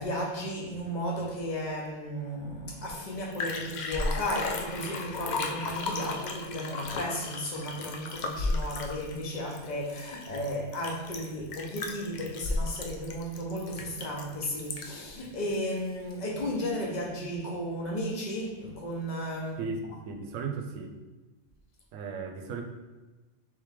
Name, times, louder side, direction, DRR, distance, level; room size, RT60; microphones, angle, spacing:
voice 1, 0.0-19.6, equal, 40° left, -1 dB, 0.8 m, -34 dB
Liquid, 2.9-3.0 3.2-15.1 15.5-15.6, left 3 dB, 70° left, 0.4 m, -34 dB
voice 2, 19.6-21.0 21.9-22.6, right 4 dB, 90° right, 4 dB, 1.0 m, -36 dB
3.7 x 3.2 x 3.5 m, 1.2 s
omnidirectional pair, 1.3 m